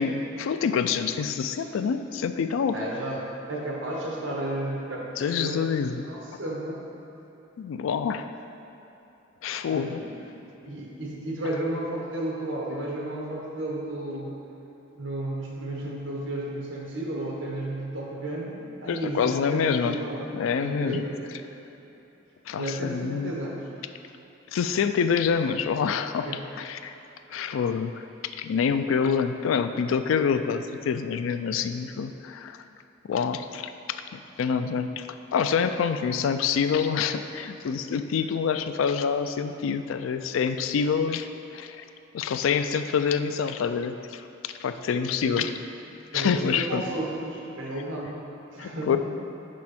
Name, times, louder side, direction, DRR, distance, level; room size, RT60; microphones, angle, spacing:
voice 1, 0.0-2.8 5.2-6.1 7.6-8.3 9.4-10.0 18.9-20.0 20.3-21.0 22.5-23.3 24.5-26.3 26.6-26.9 27.3-28.0 28.4-32.6 33.1-33.7 34.4-35.1 35.3-41.3 41.5-41.8 42.1-45.5 46.1-46.8 48.6-49.0, left 6 dB, 85° left, 10 dB, 0.3 m, -26 dB
voice 2, 2.7-5.7 6.0-6.8 9.7-10.3 10.6-14.4 14.9-21.2 22.5-23.7 26.3-26.4 45.2-45.5 46.1-48.2 48.5-49.0, right 1 dB, 70° right, -3 dB, 1.2 m, -33 dB
6.3 x 5.4 x 4.3 m, 3.0 s
head